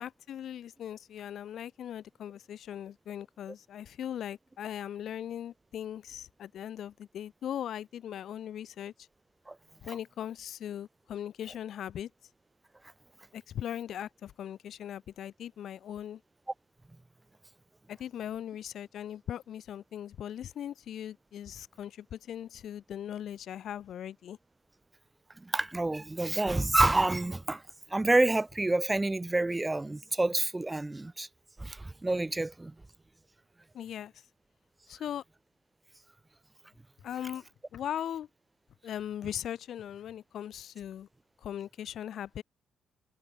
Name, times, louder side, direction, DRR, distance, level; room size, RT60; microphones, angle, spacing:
voice 1, 0.0-8.9 9.8-12.1 13.3-16.2 17.9-24.4 33.7-34.2 34.9-35.2 37.0-37.4 37.7-38.3 38.8-41.1 41.4-42.4, left 10 dB, 70° left, 0.7 m, -39 dB
voice 2, 25.4-27.6 27.9-31.3 31.6-32.7, right 2 dB, 15° right, 1.1 m, -28 dB
cardioid pair, 90°, 0 cm